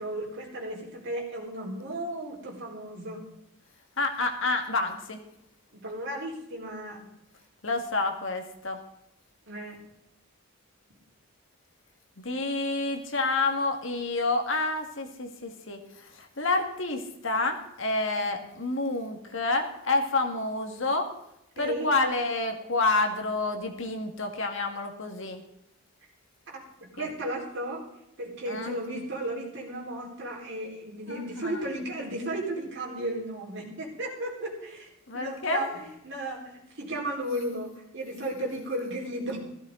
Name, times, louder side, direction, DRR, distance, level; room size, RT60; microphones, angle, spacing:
voice 1, 0.0-3.2 5.7-7.1 9.5-9.8 18.2-18.4 21.6-21.9 26.5-26.6 26.9-27.8 28.2-34.9 35.1-39.4, right 1 dB, 55° right, -3 dB, 4.3 m, -34 dB
voice 2, 4.0-5.2 7.6-8.8 12.2-21.1 21.6-25.4 27.0-27.1 28.5-28.8 31.1-31.6 35.1-35.7, left 3 dB, 60° left, 5 dB, 1.8 m, -29 dB
15.5 x 14.0 x 3.9 m, 0.82 s
head